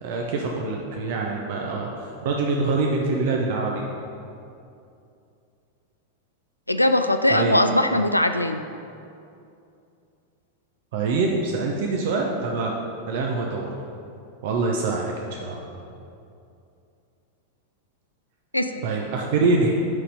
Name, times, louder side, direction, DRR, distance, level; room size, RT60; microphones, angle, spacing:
voice 1, 0.0-1.9 2.2-3.9 7.3-7.6 10.9-12.7 13.1-13.7 14.4-15.0 15.3-15.8 18.8-19.8, right 3 dB, 50° right, 0 dB, 0.8 m, -24 dB
voice 2, 6.7-8.6 18.5-18.8, left 1 dB, 85° left, 8 dB, 0.3 m, -20 dB
11.0 x 4.2 x 5.4 m, 2.6 s
figure-of-eight pair, 90°, 0 cm